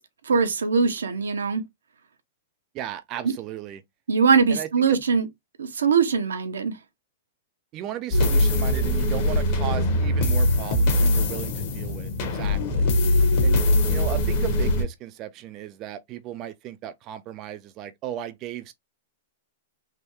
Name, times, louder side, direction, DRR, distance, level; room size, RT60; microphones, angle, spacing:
voice 1, 0.2-1.6 4.1-5.2 5.6-6.8, right 5 dB, 90° right, 0.8 m, -21 dB
voice 2, 2.7-3.8 4.5-5.0 7.7-12.9 13.4-18.7, right 11 dB, 35° right, 0.4 m, -35 dB
sound 1, 8.1-14.8, left 1 dB, 50° left, 1.1 m, -22 dB
3.4 x 2.2 x 3.0 m
hypercardioid pair, 125°, 0 cm